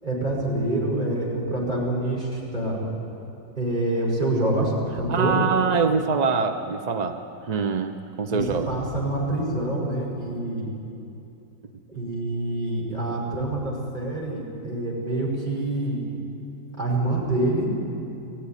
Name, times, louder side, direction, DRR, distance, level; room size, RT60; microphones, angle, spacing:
voice 1, 0.0-2.8 3.6-4.7 5.0-5.3 8.3-10.7 11.9-16.0 16.8-17.7, right 1 dB, 25° right, -4 dB, 5.3 m, -26 dB
voice 2, 5.1-8.7, right 5 dB, 50° right, 7 dB, 0.5 m, -24 dB
19.5 x 15.5 x 9.9 m, 2.8 s
omnidirectional pair, 1.8 m